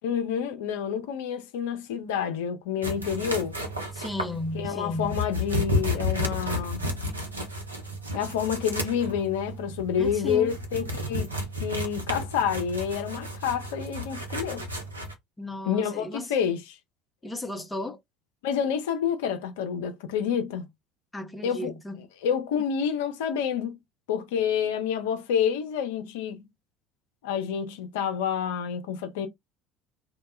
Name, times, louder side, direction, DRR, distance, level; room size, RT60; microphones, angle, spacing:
voice 1, 0.0-3.6 4.5-6.8 8.1-11.3 11.6-14.7 15.7-16.8 18.4-20.6 21.4-21.7 22.2-23.7 24.1-26.4 27.2-29.3, left 8 dB, 70° left, 0.4 m, -28 dB
sound 1, 2.8-15.1, left 1 dB, 90° right, 0.5 m, -32 dB
voice 2, 3.9-5.2 10.0-10.5 15.4-16.3 17.2-18.0 21.1-22.0, left 1 dB, 10° left, 0.5 m, -34 dB
2.1 x 2.1 x 3.1 m
figure-of-eight pair, 65°, 0 cm